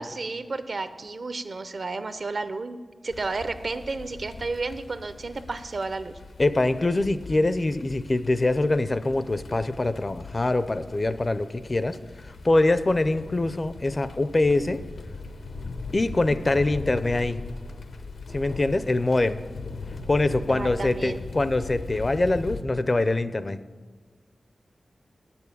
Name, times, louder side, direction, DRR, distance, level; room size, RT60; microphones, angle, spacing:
voice 1, 0.0-6.2 20.5-21.2, right 3 dB, 55° right, 11 dB, 0.6 m, -32 dB
sound 1, 3.1-22.6, left 3 dB, 80° left, 0.7 m, -40 dB
voice 2, 6.4-12.0 12.4-14.8 15.9-17.4 18.3-19.4 20.1-23.6, left 2 dB, 35° left, 13 dB, 0.4 m, -24 dB
8.1 x 7.0 x 8.4 m, 1.4 s
wide cardioid pair, 90°, 0 cm